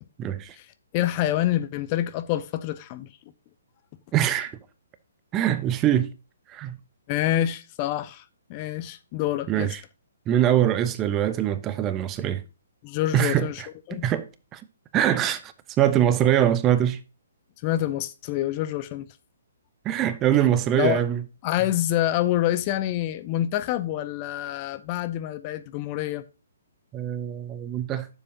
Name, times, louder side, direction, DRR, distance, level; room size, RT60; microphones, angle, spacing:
voice 1, 0.2-0.6 4.1-4.6 5.3-6.1 6.5-6.8 9.5-9.8 10.3-12.4 13.1-14.3 14.5-14.6 14.9-15.5 15.8-17.0 19.8-21.2 26.9-28.1, right 11 dB, 20° right, 0.6 m, -23 dB
voice 2, 0.9-3.1 7.1-8.2 8.5-9.8 12.8-13.6 13.9-14.0 17.6-19.1 20.8-21.0 21.4-26.2, left 13 dB, 30° left, 0.6 m, -27 dB
9.5 x 7.1 x 2.7 m
figure-of-eight pair, 125°, 0 cm